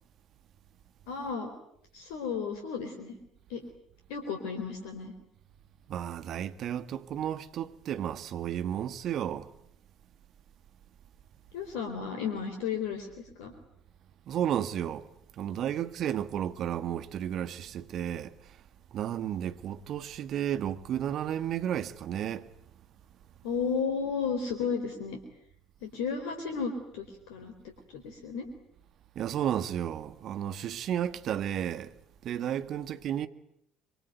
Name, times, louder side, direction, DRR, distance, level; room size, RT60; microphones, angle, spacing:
voice 1, 1.1-1.5 1.9-3.2 3.5-3.6 4.1-5.1 11.5-13.5 23.4-25.2 25.8-27.5 27.9-28.5, left 6 dB, 70° left, 4.0 m, -33 dB
voice 2, 5.9-9.5 14.3-15.1 15.4-18.3 18.9-22.5 29.1-31.9 32.2-33.3, right 10 dB, 50° right, 1.7 m, -32 dB
26.5 x 24.5 x 9.3 m
hypercardioid pair, 60°, 0 cm